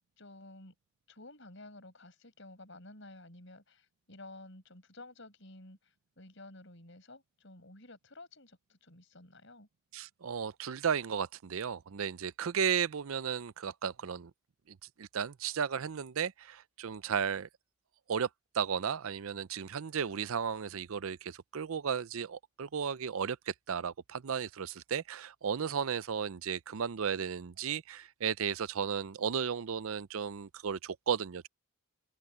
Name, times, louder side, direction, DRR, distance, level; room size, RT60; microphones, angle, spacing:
voice 1, 0.2-0.7 1.1-9.7, left 2 dB, 55° left, 6.8 m, -52 dB
voice 2, 9.9-14.3 14.7-17.5 18.1-18.3 18.5-31.5, right 7 dB, 75° right, 0.5 m, -34 dB
open air
head